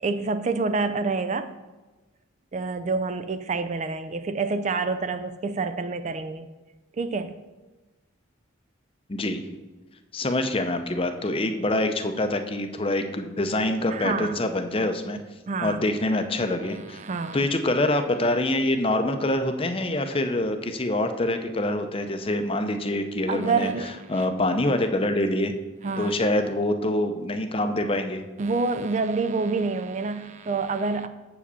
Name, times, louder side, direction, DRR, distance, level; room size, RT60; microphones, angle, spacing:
voice 1, 0.0-1.5 2.5-6.5 7.0-7.4 13.9-14.4 15.5-15.8 16.9-17.5 23.3-24.2 25.8-26.1 28.4-31.1, right 4 dB, 35° right, 10 dB, 0.3 m, -27 dB
voice 2, 9.1-9.4 10.1-15.2 15.6-17.0 17.3-23.7 24.1-25.5 26.0-28.2, left 1 dB, 25° left, 7 dB, 0.6 m, -25 dB
7.3 x 5.0 x 6.8 m, 1.2 s
head